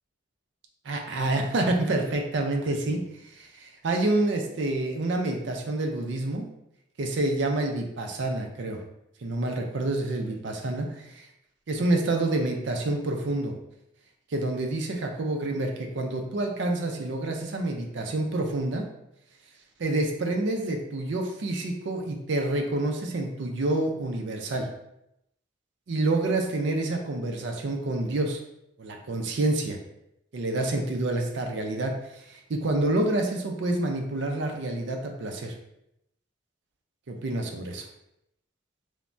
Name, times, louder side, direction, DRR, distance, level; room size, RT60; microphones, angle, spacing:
voice 1, 0.8-3.0 3.3-6.5 7.0-8.8 9.2-11.3 11.7-13.5 14.3-18.8 19.8-24.7 25.9-28.4 28.8-29.8 30.3-35.5 37.1-37.9, right 2 dB, 65° right, 3 dB, 0.4 m, -28 dB
3.2 x 2.1 x 2.5 m, 0.81 s
head